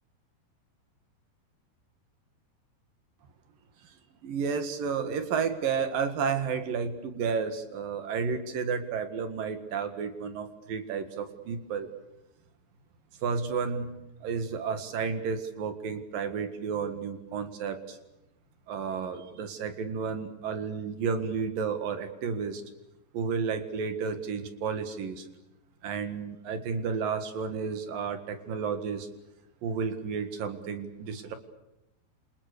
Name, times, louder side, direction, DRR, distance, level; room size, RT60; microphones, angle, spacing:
voice 1, 3.8-11.9 13.2-18.0 18.7-22.6 23.1-25.3 25.8-29.1 29.6-31.3, right 6 dB, 55° right, 9 dB, 3.1 m, -32 dB
28.5 x 27.5 x 6.9 m, 0.90 s
omnidirectional pair, 5.3 m